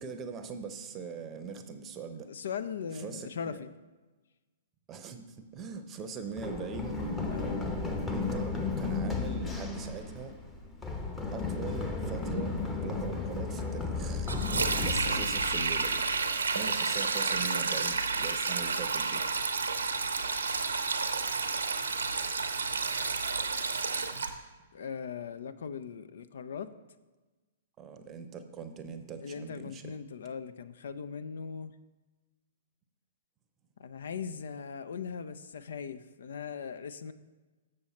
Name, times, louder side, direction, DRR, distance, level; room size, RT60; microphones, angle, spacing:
voice 1, 0.0-2.3 2.9-3.6 4.9-7.0 8.1-10.3 11.3-14.3 14.8-16.0 16.5-19.2 27.8-29.9, right 5 dB, 25° right, 8 dB, 0.7 m, -41 dB
voice 2, 2.3-3.7 7.3-7.6 15.0-15.3 24.7-26.7 29.2-31.7 33.8-37.1, left 6 dB, 70° left, 13 dB, 0.4 m, -39 dB
Run, 6.4-16.1, left 4 dB, 10° left, 0.9 m, -34 dB
Sink (filling or washing), 14.3-24.3, right 4 dB, 85° right, 0.7 m, -30 dB
7.0 x 6.5 x 4.2 m, 1.2 s
hypercardioid pair, 120°, 0 cm